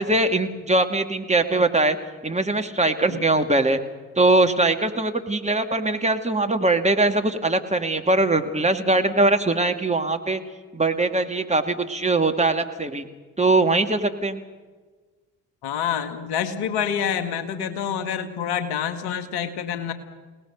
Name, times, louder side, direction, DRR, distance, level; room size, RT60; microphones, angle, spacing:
voice 1, 0.0-2.0 2.2-3.8 4.2-10.4 10.7-13.1 13.4-14.4, right 2 dB, 15° right, 5 dB, 2.5 m, -21 dB
voice 2, 15.6-19.9, left 8 dB, 70° left, 10 dB, 2.0 m, -27 dB
29.5 x 19.0 x 6.7 m, 1.4 s
figure-of-eight pair, 45°, 41 cm